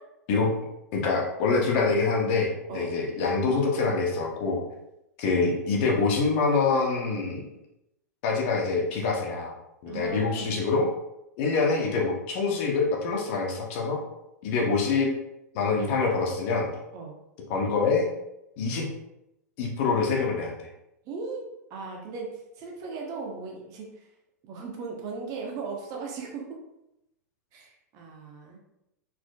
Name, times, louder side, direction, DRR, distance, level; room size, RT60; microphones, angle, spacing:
voice 1, 0.9-4.6 5.2-7.5 8.2-9.5 9.8-10.9 11.4-14.0 14.4-15.1 15.5-16.7 17.5-18.1 18.6-18.9 19.6-20.5, left 4 dB, 45° left, -1 dB, 1.0 m, -25 dB
voice 2, 9.9-10.6 16.9-17.1 21.0-21.4 21.7-23.9 24.4-26.4 27.5-28.6, right 4 dB, 40° right, 0 dB, 1.1 m, -37 dB
4.5 x 4.2 x 2.4 m, 0.87 s
figure-of-eight pair, 95°, 9 cm